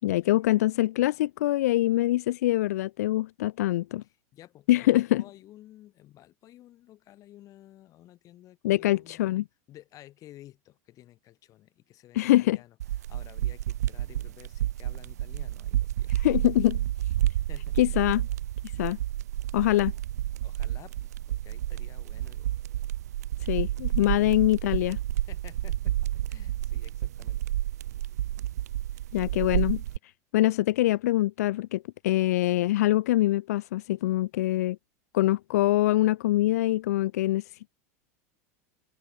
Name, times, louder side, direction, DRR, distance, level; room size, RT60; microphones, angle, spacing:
voice 1, 0.0-4.0 4.7-5.2 8.6-9.4 12.1-12.6 16.2-16.8 17.8-18.2 18.8-19.0 19.5-19.9 23.5-25.0 29.1-29.8 30.3-34.8 35.1-37.7, left 15 dB, 80° left, 1.0 m, -24 dB
voice 2, 4.0-9.4 9.7-12.8 13.1-16.1 17.5-17.8 18.1-18.2 18.7-18.9 20.4-22.6 23.9-24.3 25.3-27.5 28.0-28.2 28.9-29.0, left 14 dB, 40° left, 7.2 m, -53 dB
sound 1, 12.8-30.0, right 13 dB, 85° right, 1.7 m, -30 dB
supercardioid pair, 115°, 8 cm